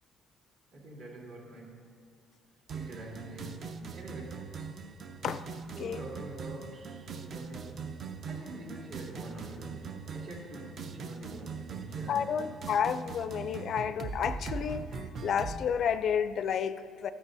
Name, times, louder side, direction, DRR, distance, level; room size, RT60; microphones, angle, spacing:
voice 1, 0.7-1.9 2.7-4.6 5.7-12.4, right 1 dB, 65° right, -4 dB, 3.1 m, -46 dB
sound 1, 2.7-15.6, right 5 dB, 50° right, 0.6 m, -41 dB
voice 2, 5.2-6.0 12.1-17.1, left 7 dB, 55° left, 13 dB, 0.4 m, -31 dB
14.0 x 12.5 x 2.7 m, 2.1 s
cardioid pair, 115°, 0 cm